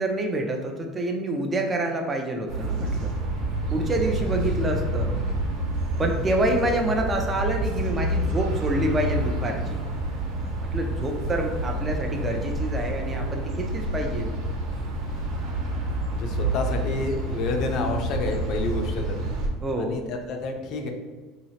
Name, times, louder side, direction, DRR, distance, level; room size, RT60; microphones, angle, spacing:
voice 1, 0.0-3.1 3.7-5.2 6.0-9.8 10.7-14.3 19.6-20.1, right 1 dB, 20° right, 2 dB, 0.4 m, -27 dB
sound 1, 2.5-19.5, right 1 dB, 75° right, 0.9 m, -28 dB
voice 2, 16.1-19.2 19.8-20.9, left 3 dB, 50° left, 3 dB, 0.6 m, -29 dB
4.0 x 2.8 x 2.8 m, 1.4 s
supercardioid pair, 135°, 0 cm